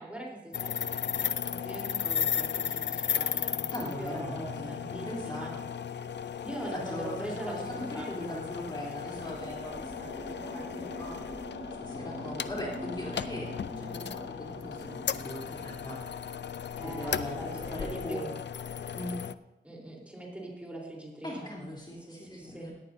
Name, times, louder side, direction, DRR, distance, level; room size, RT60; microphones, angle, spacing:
voice 1, 0.0-5.5 6.4-8.4 16.8-18.2 19.6-21.5 22.1-22.7, right 1 dB, 5° right, -3 dB, 3.7 m, -42 dB
sound 1, 0.5-19.3, left 8 dB, 75° left, 0.5 m, -36 dB
voice 2, 3.7-5.6 6.6-11.2 11.8-16.0 16.8-17.4 17.7-18.3 18.9-19.2 21.2-22.7, equal, 25° left, -4 dB, 3.3 m, -40 dB
sound 2, 9.1-17.7 18.5-19.1, right 1 dB, 30° right, 2.3 m, -45 dB
18.0 x 14.0 x 2.7 m, 0.93 s
wide cardioid pair, 80°, 18 cm